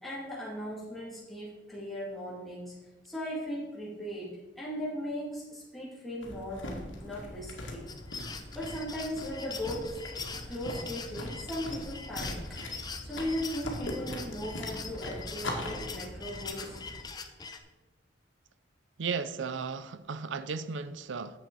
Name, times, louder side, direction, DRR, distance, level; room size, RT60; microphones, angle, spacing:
voice 1, 0.0-2.8 3.0-7.8 8.5-10.0 10.5-12.6 13.0-16.8, equal, ahead, 2.3 m, -38 dB
sound 1, 6.2-17.0, left 1 dB, 80° left, 2.0 m, -41 dB
sound 2, 7.9-17.6, left 5 dB, 20° left, 0.7 m, -43 dB
voice 2, 19.0-21.4, right 5 dB, 75° right, 0.5 m, -35 dB
10.0 x 7.8 x 4.6 m
head